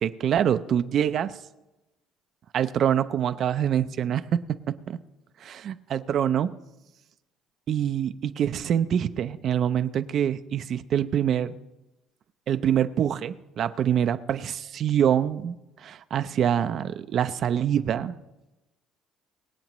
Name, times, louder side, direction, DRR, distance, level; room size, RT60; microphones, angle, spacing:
voice 1, 0.0-1.4 2.5-5.0 5.4-6.5 7.7-11.5 12.5-15.6 15.8-18.1, right 9 dB, 45° right, 12 dB, 0.4 m, -25 dB
23.5 x 8.3 x 3.0 m, 0.98 s
cardioid pair, 145°, 0 cm